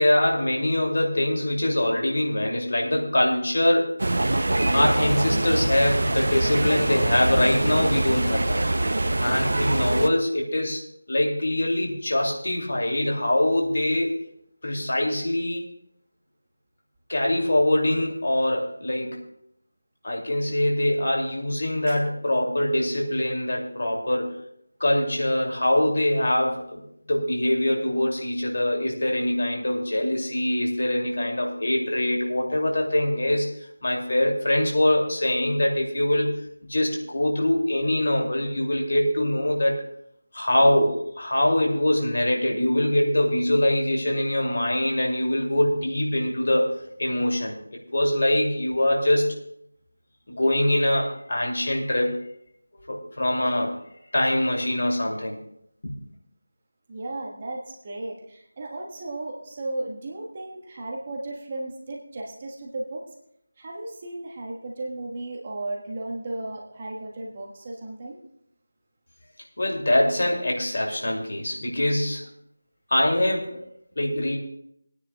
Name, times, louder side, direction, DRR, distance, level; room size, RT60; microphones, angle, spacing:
voice 1, 0.0-3.9 4.7-8.6 9.2-10.8 11.1-14.2 14.6-15.6 17.1-19.2 20.0-24.4 24.8-26.8 27.1-33.5 33.8-36.4 36.7-39.8 40.3-46.7 47.0-47.5 47.9-49.4 50.3-52.1 52.8-53.8 54.1-55.4 55.8-55.9 69.6-72.2 72.9-73.6 74.0-74.4, left 1 dB, 55° left, 0 dB, 2.4 m, -23 dB
sound 1, 4.0-10.1, right 2 dB, 55° right, 0.6 m, -24 dB
voice 2, 56.9-63.0 63.6-68.2, right 2 dB, 30° right, -1 dB, 1.4 m, -35 dB
21.5 x 9.7 x 2.3 m, 0.73 s
figure-of-eight pair, 165°, 0 cm